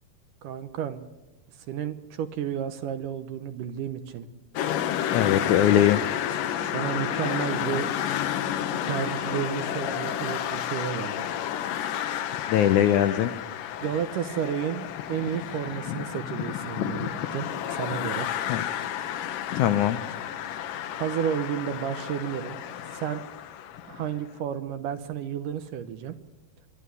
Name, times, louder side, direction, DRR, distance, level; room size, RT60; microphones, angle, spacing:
voice 1, 0.4-1.0 1.7-4.3 6.6-7.9 8.9-11.3 13.8-18.3 21.0-22.6 22.9-23.2 23.9-26.2, right 9 dB, 70° right, 10 dB, 2.3 m, -32 dB
sound 1, 4.6-24.1, left 10 dB, 70° left, 2.5 m, -31 dB
voice 2, 5.1-6.0 12.5-13.3 18.5-18.6 19.5-20.0, left 11 dB, 85° left, 11 dB, 1.7 m, -21 dB
23.0 x 12.0 x 9.6 m, 1.2 s
omnidirectional pair, 4.5 m